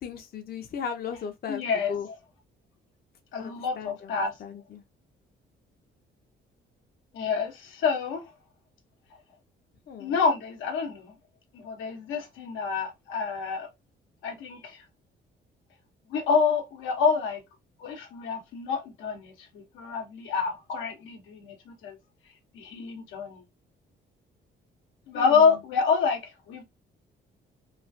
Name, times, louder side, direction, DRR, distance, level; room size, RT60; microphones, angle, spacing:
voice 1, 0.0-1.6 1.9-2.1 3.4-4.8 9.9-10.2 25.1-25.6, left 7 dB, 50° left, 0.6 m, -37 dB
voice 2, 1.5-1.9 3.3-4.3 7.1-8.2 10.0-11.1 11.5-13.7 14.2-14.8 16.1-17.4 17.8-22.0 22.5-23.4 25.1-26.6, left 5 dB, 90° left, 0.9 m, -27 dB
3.1 x 2.3 x 2.6 m
cardioid pair, 90°, 20 cm